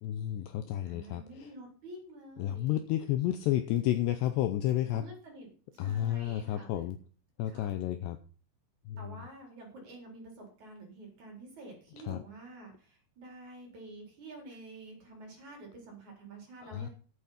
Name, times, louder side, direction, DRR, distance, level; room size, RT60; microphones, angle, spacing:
voice 1, 0.0-1.5 2.4-5.1 5.8-7.0 7.4-8.2 8.9-9.0 12.1-12.2 16.7-16.9, left 12 dB, 80° left, 10 dB, 2.5 m, -31 dB
voice 2, 0.8-2.8 4.8-6.7 7.4-7.7 9.0-16.9, right 2 dB, 40° right, 1 dB, 5.1 m, -49 dB
9.9 x 8.5 x 5.8 m, 0.40 s
omnidirectional pair, 5.6 m